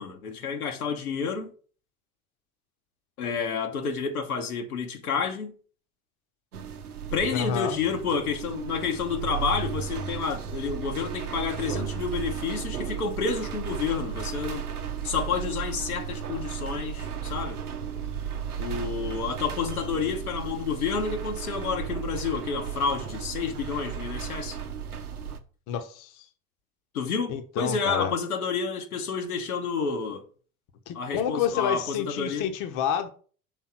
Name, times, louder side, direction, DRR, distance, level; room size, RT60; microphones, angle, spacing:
voice 1, 0.0-1.5 3.2-5.5 7.1-14.7 15.0-17.6 18.6-24.6 26.9-30.2 30.9-32.5, left 5 dB, 80° left, 1.1 m, -30 dB
sound 1, 6.5-25.4, right 8 dB, 90° right, 0.7 m, -34 dB
voice 2, 7.3-7.8 25.7-26.2 27.3-28.1 30.9-33.1, left 8 dB, 45° left, 0.9 m, -29 dB
6.3 x 3.6 x 5.7 m
figure-of-eight pair, 75°, 44 cm